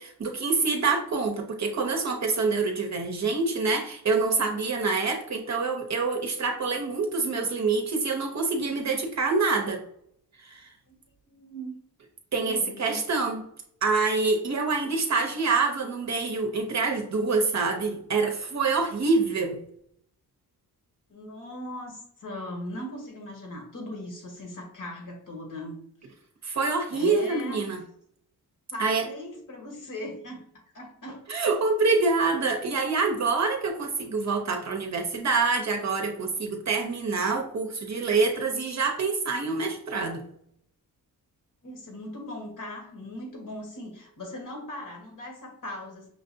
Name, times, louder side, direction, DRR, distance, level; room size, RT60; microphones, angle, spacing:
voice 1, 0.0-9.8 10.4-10.7 12.3-13.4 13.8-19.6 26.4-27.8 28.8-29.1 31.3-40.3, right 4 dB, 45° right, 3 dB, 0.7 m, -26 dB
voice 2, 11.3-11.8 12.4-13.0 21.1-25.8 26.9-27.7 28.7-30.4 30.7-31.4 41.6-46.1, left 1 dB, 55° left, 1 dB, 1.5 m, -39 dB
5.9 x 2.5 x 2.6 m, 0.69 s
cardioid pair, 95°, 39 cm